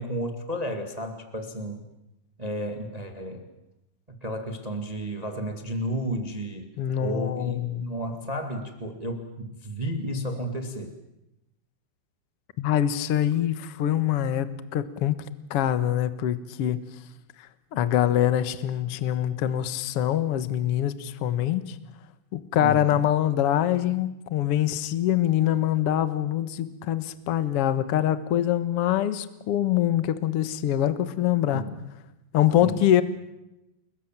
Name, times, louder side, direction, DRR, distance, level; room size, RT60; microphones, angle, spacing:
voice 1, 0.0-1.9 2.4-3.4 4.1-6.7 7.0-11.0 22.5-23.0 31.5-31.8 32.6-32.9, right 1 dB, 55° right, 5 dB, 0.4 m, -32 dB
voice 2, 6.8-7.9 12.6-14.5 14.7-15.2 15.5-16.8 17.4-21.8 22.3-31.6 32.3-33.0, left 11 dB, 90° left, 12 dB, 1.3 m, -24 dB
30.0 x 21.5 x 7.5 m, 0.93 s
omnidirectional pair, 4.8 m